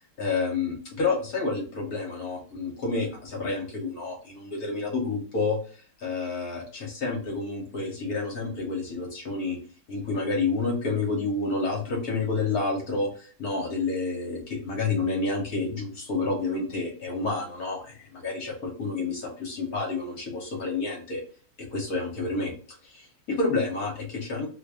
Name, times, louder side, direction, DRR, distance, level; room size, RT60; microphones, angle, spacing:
voice 1, 0.2-5.6 6.0-9.6 9.9-21.2 21.7-22.5 22.8-24.5, left 3 dB, 50° left, 0 dB, 1.3 m, -29 dB
3.2 x 2.6 x 3.5 m, 0.41 s
omnidirectional pair, 2.4 m